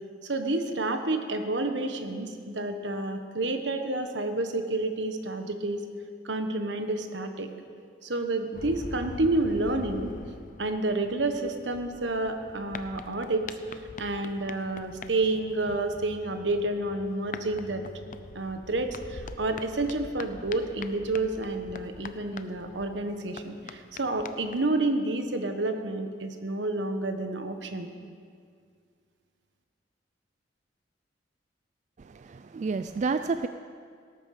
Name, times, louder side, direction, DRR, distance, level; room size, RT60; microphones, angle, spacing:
voice 1, 0.2-5.8 6.2-7.5 8.0-10.1 10.6-17.8 18.3-27.9, right 2 dB, 75° right, 6 dB, 1.2 m, -29 dB
sound 1, 8.5-24.7, left 3 dB, 45° left, 0.6 m, -44 dB
voice 2, 32.0-33.5, right 4 dB, 40° right, 10 dB, 0.4 m, -30 dB
18.0 x 9.0 x 6.5 m, 2.1 s
head